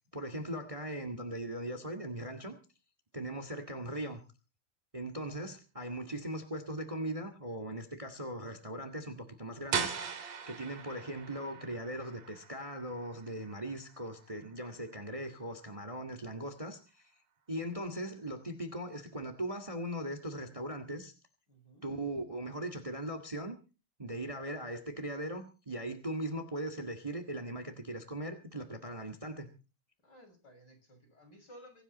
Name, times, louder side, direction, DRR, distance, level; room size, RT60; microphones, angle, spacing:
voice 1, 0.1-2.5 3.1-4.2 4.9-9.9 10.5-17.1 17.5-21.1 21.8-23.6 24.0-29.5, right 1 dB, 40° right, 7 dB, 0.4 m, -39 dB
sound 1, 9.7-15.4, right 7 dB, 55° right, 3.9 m, -40 dB
voice 2, 21.5-21.9 30.0-31.8, equal, 25° left, 3 dB, 6.9 m, -56 dB
24.5 x 12.0 x 4.2 m, 0.34 s
omnidirectional pair, 4.6 m